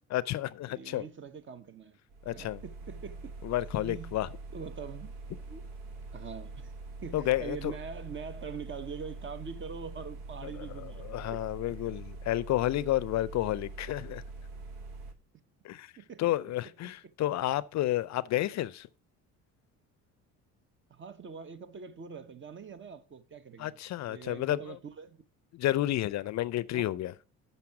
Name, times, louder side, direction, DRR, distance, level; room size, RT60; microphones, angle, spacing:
voice 1, 0.1-1.0 2.3-2.6 3.4-4.3 7.1-7.7 10.6-14.2 15.6-15.9 16.2-18.9 23.6-24.8 25.5-27.1, left 14 dB, 55° left, 0.5 m, -31 dB
voice 2, 0.7-2.0 2.3-3.3 3.8-4.3 4.5-5.1 5.5-5.6 6.1-6.7 7.0-11.0 11.3-11.4 16.0-16.2 16.8-17.0 20.9-23.8 24.1-25.2 26.7-26.9, right 6 dB, 35° right, 0.9 m, -43 dB
sound 1, 2.1-15.1, right 3 dB, 90° right, 1.2 m, -44 dB
7.1 x 5.5 x 5.8 m
supercardioid pair, 90°, 34 cm